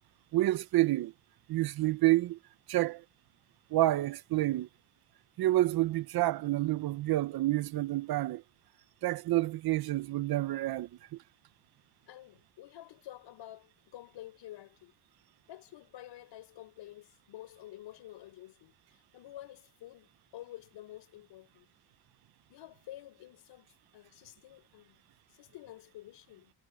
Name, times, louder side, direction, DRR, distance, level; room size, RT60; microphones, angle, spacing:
voice 1, 0.3-1.1 1.5-2.4 2.7-3.0 3.7-4.7 5.4-8.4 9.0-10.9, right 16 dB, 55° right, 0.7 m, -28 dB
voice 2, 12.1-14.9 15.5-21.7 22.5-25.0 25.3-26.5, left 14 dB, 75° left, 5.6 m, -50 dB
cardioid pair, 175°, 43 cm